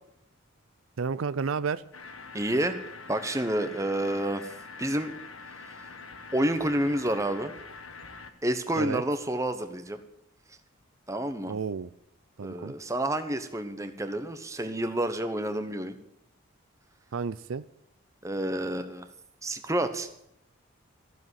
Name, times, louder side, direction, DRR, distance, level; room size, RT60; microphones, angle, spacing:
voice 1, 1.0-1.8 8.8-9.0 11.5-11.9 12.4-12.7 17.1-17.7, right 5 dB, 75° right, 15 dB, 0.5 m, -31 dB
sound 1, 1.9-8.3, left 4 dB, 80° left, 1.3 m, -45 dB
voice 2, 2.3-2.8 3.1-4.5 4.8-5.1 6.3-7.5 8.4-10.0 11.1-11.5 12.4-16.0 18.2-19.1 19.4-20.1, right 1 dB, 15° right, 8 dB, 1.0 m, -29 dB
14.5 x 7.6 x 9.7 m, 0.77 s
head